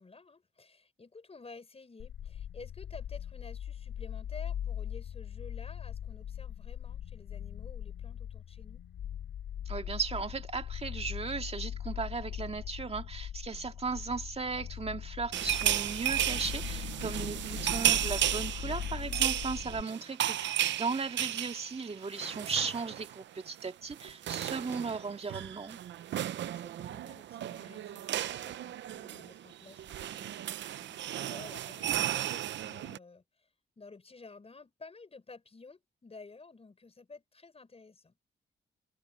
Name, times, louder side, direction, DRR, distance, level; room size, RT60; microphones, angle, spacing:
voice 1, 0.0-8.8 19.8-20.2 26.3-33.5 33.8-38.2, left 3 dB, 35° left, 5.9 m, -52 dB
sound 1, 2.0-19.8, left 10 dB, 90° left, 3.0 m, -40 dB
voice 2, 9.7-25.8, right 4 dB, 35° right, 2.1 m, -36 dB
sound 2, 15.3-23.2 23.5-23.7 23.9-33.0, right 12 dB, 85° right, 0.7 m, -34 dB
cardioid pair, 80°, 18 cm